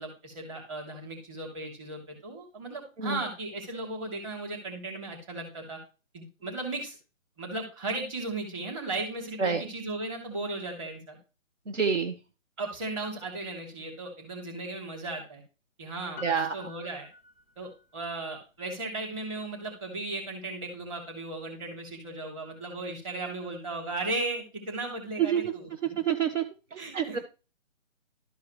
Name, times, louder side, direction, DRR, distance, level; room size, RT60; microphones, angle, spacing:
voice 1, 0.0-5.8 6.1-7.0 7.4-11.2 12.6-15.4 15.8-17.1 17.6-25.7 26.8-27.2, right 2 dB, 25° right, 1 dB, 2.9 m, -36 dB
voice 2, 11.7-12.2 16.2-16.5 25.2-25.5 26.0-27.2, right 7 dB, 70° right, 7 dB, 1.3 m, -28 dB
Piano, 16.2-18.0 18.3-18.4, left 2 dB, 10° left, 0.9 m, -47 dB
12.5 x 4.7 x 3.1 m, 0.32 s
hypercardioid pair, 160°, 39 cm